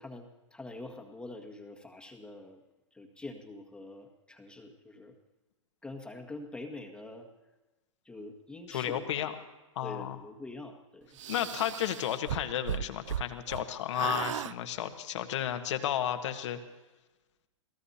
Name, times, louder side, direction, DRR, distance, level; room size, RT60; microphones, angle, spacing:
voice 1, 0.0-2.6 2.9-5.1 5.8-7.3 8.1-9.0 9.8-11.1, left 2 dB, 5° left, 2 dB, 1.7 m, -45 dB
voice 2, 8.7-9.3 9.7-10.2 11.3-16.6, left 11 dB, 60° left, 7 dB, 1.5 m, -33 dB
sound 1, 11.2-13.6 13.9-14.5, right 10 dB, 65° right, 0.4 m, -36 dB
28.0 x 18.0 x 2.8 m, 1.1 s
hypercardioid pair, 115°, 17 cm